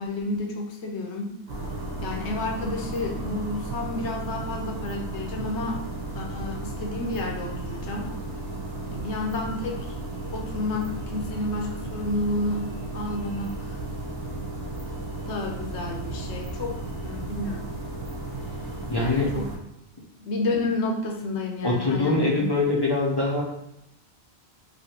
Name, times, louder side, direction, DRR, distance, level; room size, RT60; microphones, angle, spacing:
voice 1, 0.0-1.4 2.0-5.8 6.1-8.1 8.9-9.9 10.3-13.8 15.3-17.7 19.3-19.4 20.2-22.5, left 2 dB, 85° left, 1 dB, 1.0 m, -30 dB
sound 1, 1.5-19.6, right 2 dB, 65° right, 1.0 m, -34 dB
voice 2, 18.9-19.3 21.6-23.4, left 2 dB, 30° left, -4 dB, 0.5 m, -23 dB
3.1 x 2.7 x 2.9 m, 0.81 s
omnidirectional pair, 1.1 m